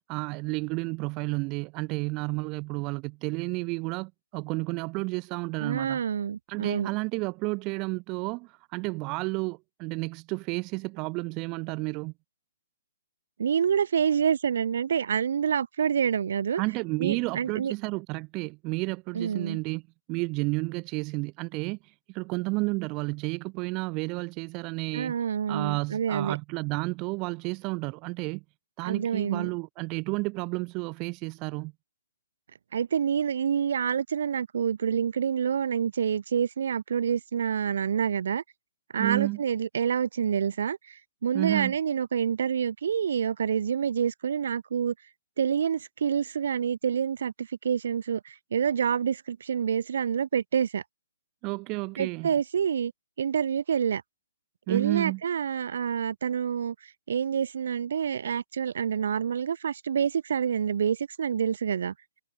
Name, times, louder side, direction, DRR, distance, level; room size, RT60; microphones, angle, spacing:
voice 1, 0.1-6.0 6.5-12.1 16.6-19.8 20.1-21.8 22.1-25.1 25.5-28.4 28.8-31.7 39.0-39.4 41.3-41.7 51.4-52.3 54.7-55.2, right 27 dB, 25° right, 0.5 m, -31 dB
voice 2, 5.6-6.9 13.4-16.6 17.0-17.7 19.1-19.6 24.9-26.4 28.8-29.5 32.7-38.4 38.9-44.9 45.4-50.8 52.0-52.9 53.2-54.0 54.7-61.9, right 7 dB, 65° right, 0.8 m, -27 dB
hypercardioid pair, 155°, 0 cm